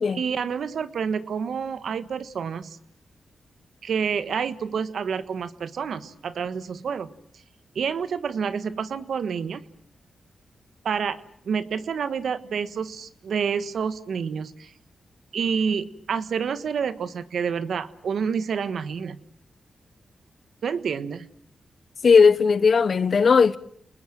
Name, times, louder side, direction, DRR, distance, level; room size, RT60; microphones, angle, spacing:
voice 1, 0.1-2.8 3.8-7.1 7.7-9.6 10.8-14.7 15.3-19.2 20.6-21.3, right 6 dB, 75° right, 1.4 m, -28 dB
voice 2, 22.0-23.6, left 5 dB, 60° left, 1.1 m, -17 dB
30.0 x 20.5 x 7.6 m
cardioid pair, 55°, 0 cm